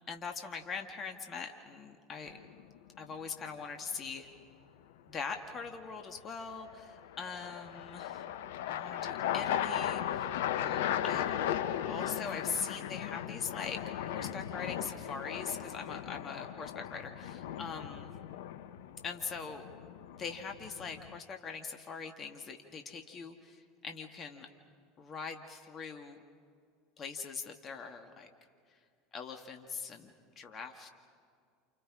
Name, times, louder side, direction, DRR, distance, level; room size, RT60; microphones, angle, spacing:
voice 1, 0.0-2.4 3.0-4.3 5.1-8.3 8.7-11.3 11.9-18.1 19.0-19.6 20.2-24.5 25.0-26.2 27.0-28.3 29.1-30.9, left 5 dB, 35° left, 4 dB, 2.0 m, -42 dB
sound 1, 2.3-2.8 6.6-21.2, left 10 dB, 70° left, 0.8 m, -37 dB
29.5 x 28.5 x 5.0 m, 2.2 s
hypercardioid pair, 75°, 0 cm